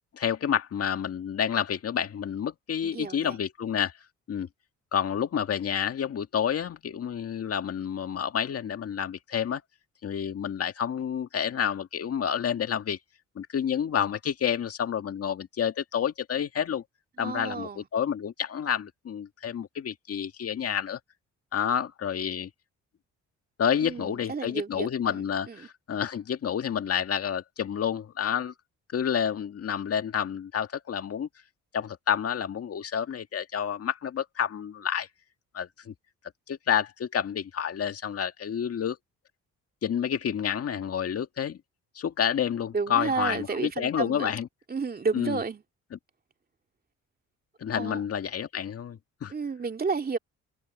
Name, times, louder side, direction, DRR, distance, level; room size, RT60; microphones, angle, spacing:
voice 1, 0.1-3.9 4.3-4.5 4.9-9.6 10.0-13.0 13.4-16.8 17.2-21.0 21.5-22.5 23.6-28.5 28.9-31.3 31.7-35.1 35.5-35.9 36.5-39.0 39.8-41.6 42.0-44.5 45.1-45.4 47.6-49.3, left 8 dB, 50° left, 1.8 m, -29 dB
voice 2, 2.8-3.4 17.2-17.9 23.8-25.2 25.5-25.7 42.7-44.3 44.7-45.6 47.7-48.1 49.3-50.2, right 4 dB, 30° right, 2.5 m, -31 dB
open air
cardioid pair, 90°, 30 cm